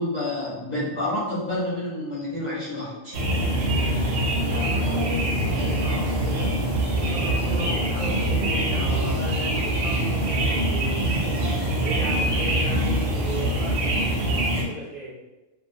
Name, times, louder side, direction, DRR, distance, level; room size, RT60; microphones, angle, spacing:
voice 1, 0.0-3.1, left 1 dB, 45° left, -10 dB, 0.7 m, -29 dB
sound 1, 3.1-14.6, right 1 dB, 65° right, 0.8 m, -24 dB
voice 2, 4.5-6.5 6.9-11.2 11.8-15.2, right 1 dB, 35° right, -9 dB, 0.8 m, -36 dB
2.3 x 2.3 x 2.5 m, 1.1 s
omnidirectional pair, 1.3 m